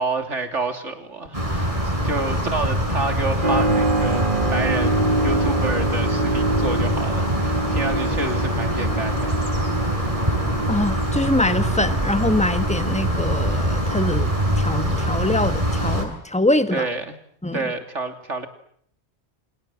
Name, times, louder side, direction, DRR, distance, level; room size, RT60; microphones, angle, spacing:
voice 1, 0.0-1.7 2.0-9.4 16.7-17.2 17.5-18.5, right 3 dB, 85° right, 6 dB, 3.4 m, -28 dB
sound 1, 1.3-16.0, equal, 30° right, 7.5 m, -23 dB
Keyboard (musical), 3.4-15.8, right 2 dB, 45° right, 2.2 m, -27 dB
voice 2, 10.7-14.3 14.6-16.9 17.4-17.6, left 1 dB, 5° left, 10 dB, 1.5 m, -23 dB
29.0 x 26.5 x 7.7 m, 0.64 s
omnidirectional pair, 1.2 m